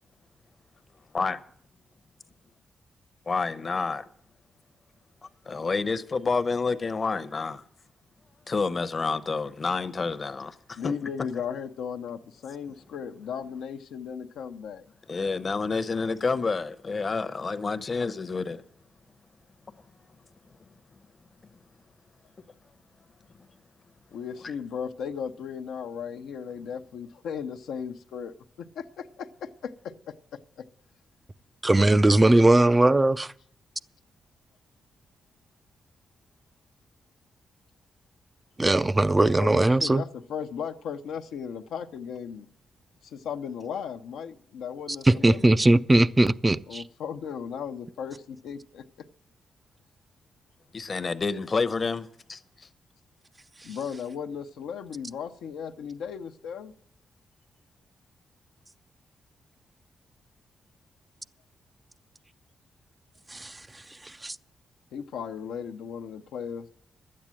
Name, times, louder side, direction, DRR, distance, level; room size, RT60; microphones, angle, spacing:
voice 1, 3.3-4.0 5.5-7.6 8.5-10.9 15.1-18.6 50.7-52.4, left 4 dB, 45° left, 0.8 m, -28 dB
voice 2, 10.8-14.9 24.1-30.7 39.3-42.5 43.0-45.7 46.7-49.1 53.6-56.7 64.9-66.7, left 7 dB, 85° left, 0.7 m, -36 dB
voice 3, 31.6-33.3 38.6-40.0 45.1-46.8 63.3-63.5 64.2-64.4, right 2 dB, 25° right, 0.5 m, -20 dB
12.0 x 8.6 x 7.5 m
supercardioid pair, 55°, 0 cm